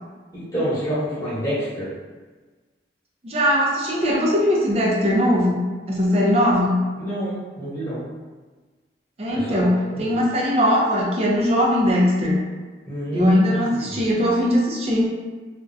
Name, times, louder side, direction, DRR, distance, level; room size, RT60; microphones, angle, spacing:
voice 1, 0.3-1.9 7.0-8.0 9.3-10.2 12.8-14.0, equal, 20° left, -11 dB, 1.0 m, -28 dB
voice 2, 3.2-5.6 5.9-6.8 9.2-9.7 10.0-12.4 13.1-15.1, equal, 35° right, -3 dB, 0.4 m, -20 dB
2.4 x 2.1 x 2.5 m, 1.3 s
head